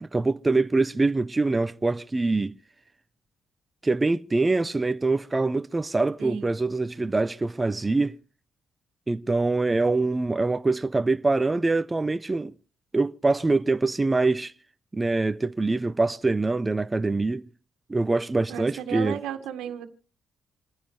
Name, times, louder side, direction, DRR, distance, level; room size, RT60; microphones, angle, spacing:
voice 1, 0.0-2.5 3.8-8.2 9.1-12.5 12.9-14.5 14.9-17.4 17.9-19.2, right 3 dB, 20° right, 0.7 m, -24 dB
voice 2, 18.5-19.9, right 8 dB, 90° right, 1.7 m, -33 dB
28.0 x 10.0 x 3.3 m
cardioid pair, 90°, 0 cm